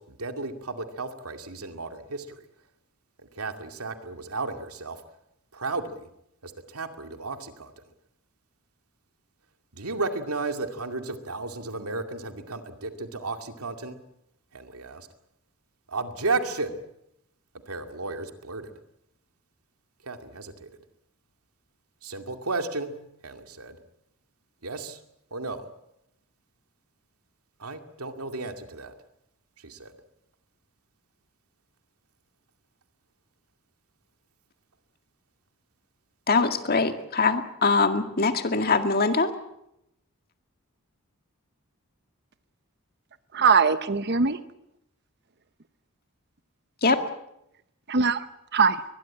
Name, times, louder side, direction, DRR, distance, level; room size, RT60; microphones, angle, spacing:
voice 1, 0.0-2.4 3.3-5.0 5.5-6.1 6.4-7.7 9.7-14.0 14.5-15.1 15.9-16.8 17.7-18.7 20.0-20.7 22.0-22.9 23.2-23.8 24.6-25.0 25.3-25.7 27.6-28.9 29.6-29.9, right 3 dB, 85° right, 6 dB, 2.4 m, -33 dB
voice 2, 36.3-39.3 46.8-47.0, left 4 dB, 45° left, 7 dB, 2.0 m, -23 dB
voice 3, 43.3-44.4 47.9-48.8, right 5 dB, 50° right, 12 dB, 0.9 m, -22 dB
22.0 x 21.0 x 8.6 m, 0.82 s
head